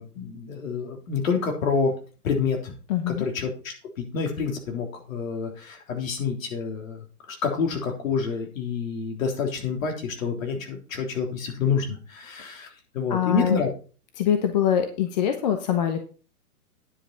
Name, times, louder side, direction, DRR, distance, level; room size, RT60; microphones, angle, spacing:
voice 1, 0.0-1.9 2.2-2.7 3.1-12.7 12.9-13.7, left 5 dB, 55° left, 2 dB, 3.5 m, -28 dB
voice 2, 2.9-3.2 13.1-13.6 14.2-16.0, left 9 dB, 25° left, 7 dB, 0.8 m, -23 dB
10.0 x 8.0 x 4.3 m, 0.36 s
hypercardioid pair, 150°, 47 cm